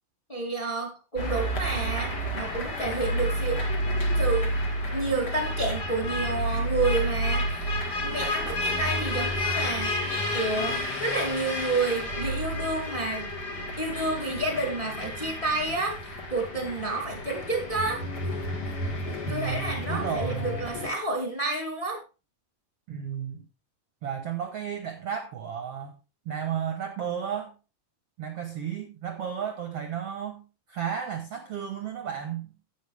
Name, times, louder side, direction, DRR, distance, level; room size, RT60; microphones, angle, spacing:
voice 1, 0.3-3.6 4.2-4.5 4.9-7.7 8.0-9.9 10.3-13.3 13.8-16.0 16.3-18.0 19.3-22.0, right 2 dB, 15° left, 2 dB, 1.7 m, -30 dB
sound 1, 1.2-20.9, equal, 45° left, 1.5 m, -30 dB
voice 2, 19.3-20.5 22.9-23.4 24.0-25.9 26.2-27.5 28.2-30.4 30.7-32.5, right 8 dB, 65° right, 6 dB, 1.6 m, -33 dB
11.5 x 8.4 x 3.5 m, 0.29 s
omnidirectional pair, 4.0 m